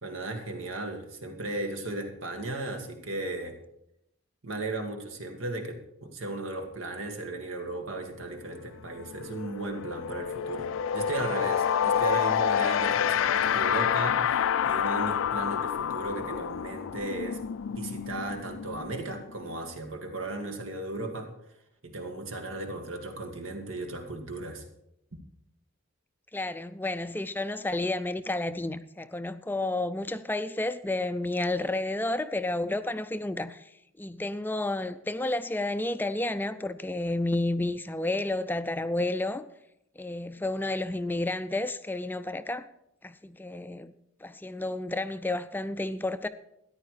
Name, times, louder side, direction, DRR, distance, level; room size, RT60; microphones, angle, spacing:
voice 1, 0.0-3.5 4.4-21.3 21.8-24.6 25.1-25.2, right 2 dB, 90° right, 2.1 m, -36 dB
Ethereal Teleport, 8.5-8.7 9.0-19.6, left 8 dB, 80° left, 0.4 m, -28 dB
voice 2, 26.3-39.4 40.0-42.7 43.0-43.9 44.2-46.3, left 2 dB, 10° left, 0.4 m, -31 dB
13.5 x 10.0 x 4.9 m
head